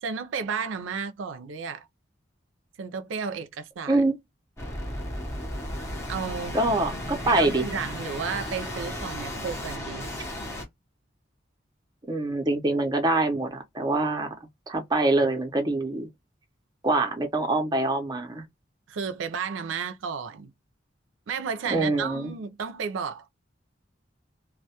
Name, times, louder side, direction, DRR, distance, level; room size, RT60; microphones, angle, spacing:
voice 1, 0.0-1.9 2.8-4.0 6.1-6.6 7.3-10.1 18.9-20.5 21.3-23.3, right 6 dB, 90° right, 0.4 m, -33 dB
sound 1, 4.6-10.6, left 1 dB, 15° left, 0.7 m, -34 dB
voice 2, 6.5-7.6 12.1-14.3 14.7-16.1 16.8-18.4 21.7-22.3, right 2 dB, 20° right, 0.6 m, -24 dB
2.2 x 2.1 x 2.7 m
head